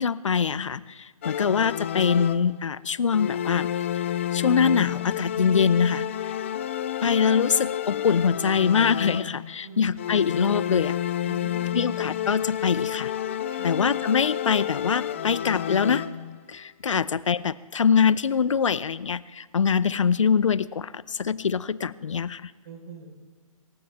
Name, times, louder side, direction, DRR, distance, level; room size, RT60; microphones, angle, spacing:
voice 1, 0.0-3.7 4.3-6.4 7.0-11.0 11.7-13.1 13.6-16.0 16.5-22.5, left 6 dB, 60° left, 18 dB, 0.7 m, -24 dB
sound 1, 1.2-2.7 3.1-9.6 10.0-16.4, left 11 dB, 20° left, 0.4 m, -30 dB
voice 2, 11.2-11.9 13.5-13.8 16.9-17.0 22.6-23.1, right 3 dB, 40° right, 1 dB, 4.5 m, -42 dB
26.5 x 13.5 x 3.5 m, 1.5 s
figure-of-eight pair, 145°, 18 cm